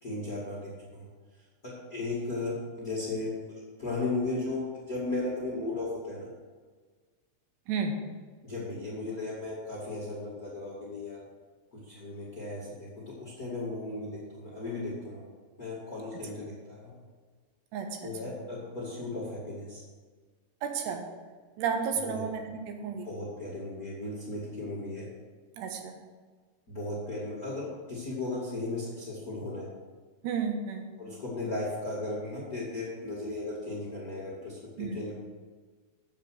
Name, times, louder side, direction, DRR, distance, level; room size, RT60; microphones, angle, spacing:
voice 1, 0.0-1.1 1.6-6.3 8.4-11.2 11.7-15.2 15.6-17.0 18.0-19.8 21.9-22.2 23.0-25.1 26.7-29.7 31.0-35.1, left 2 dB, 35° left, -7 dB, 1.4 m, -36 dB
voice 2, 7.7-8.0 17.7-18.3 20.6-21.1 21.6-23.1 25.6-25.9 30.2-30.9 34.8-35.0, right 5 dB, 85° right, 4 dB, 3.2 m, -32 dB
7.8 x 7.4 x 6.2 m, 1.5 s
omnidirectional pair, 4.8 m